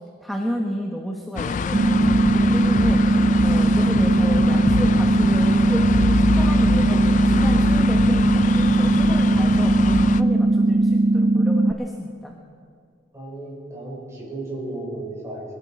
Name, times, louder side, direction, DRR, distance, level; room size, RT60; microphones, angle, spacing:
voice 1, 0.2-3.0 3.4-5.8 6.3-12.3, equal, ahead, 0 dB, 1.0 m, -31 dB
sound 1, 1.4-10.2, left 4 dB, 40° left, 0.3 m, -24 dB
sound 2, 1.7-11.7, right 2 dB, 35° right, 0.4 m, -18 dB
voice 2, 13.1-15.4, right 2 dB, 15° right, -4 dB, 4.8 m, -34 dB
22.5 x 13.0 x 4.3 m, 2.2 s
head